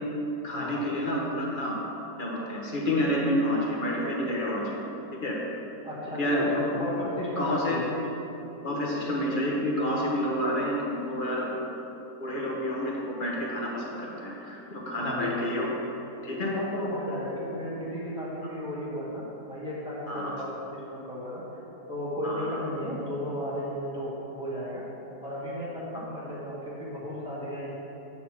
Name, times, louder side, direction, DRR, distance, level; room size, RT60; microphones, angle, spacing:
voice 1, 0.4-1.8 2.2-4.9 5.2-5.4 6.2-6.8 7.4-7.8 8.6-11.7 12.2-15.7 16.2-16.5 20.1-20.4 22.2-22.6, left 1 dB, 35° left, -3 dB, 1.3 m, -29 dB
voice 2, 5.8-7.9 15.0-15.3 16.5-21.4 21.9-24.8 25.2-27.7, equal, 5° right, -9 dB, 1.8 m, -34 dB
9.4 x 4.1 x 5.9 m, 3.0 s
omnidirectional pair, 1.7 m